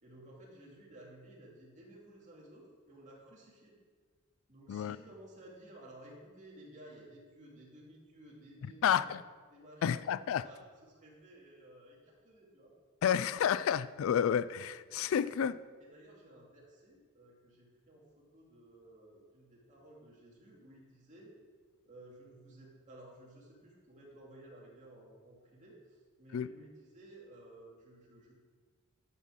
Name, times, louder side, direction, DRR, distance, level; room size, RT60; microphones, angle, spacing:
voice 1, 0.0-3.7 4.5-9.0 9.5-9.8 10.2-12.7 15.1-15.3 15.9-21.3 21.9-28.3, right 1 dB, 35° right, -3 dB, 2.6 m, -55 dB
voice 2, 8.8-9.2 9.8-10.5 13.0-15.6 26.3-26.5, left 8 dB, 65° left, 16 dB, 0.3 m, -30 dB
11.0 x 5.5 x 6.3 m, 1.5 s
head